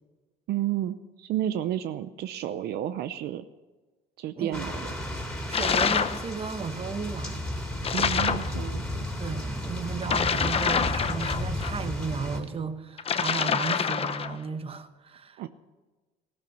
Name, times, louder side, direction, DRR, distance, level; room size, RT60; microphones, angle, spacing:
voice 1, 0.5-3.4 4.2-4.9 7.9-9.1 15.4-15.5, right 12 dB, 75° right, 12 dB, 0.7 m, -31 dB
voice 2, 4.4-4.7 5.5-7.5 9.2-15.5, right 5 dB, 35° right, 10 dB, 1.2 m, -35 dB
sound 1, 4.5-12.4, left 1 dB, 5° left, 3.2 m, -33 dB
sound 2, 5.5-6.2 7.8-8.5 10.0-11.7 13.0-14.4, left 6 dB, 35° left, 0.9 m, -26 dB
16.5 x 13.0 x 6.8 m, 1.2 s
cardioid pair, 110°, 17 cm